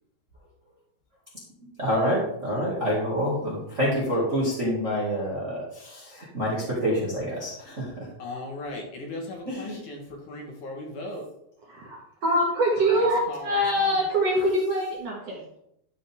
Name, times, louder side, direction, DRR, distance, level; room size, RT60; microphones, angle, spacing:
voice 1, 1.8-5.6 6.3-7.8 9.5-9.7, equal, 25° right, -6 dB, 1.6 m, -26 dB
voice 2, 8.2-11.2 12.9-14.0, left 2 dB, 60° left, 0 dB, 2.8 m, -37 dB
voice 3, 11.7-15.4, equal, 55° right, -3 dB, 2.2 m, -24 dB
12.0 x 5.3 x 3.6 m, 0.77 s
omnidirectional pair, 4.2 m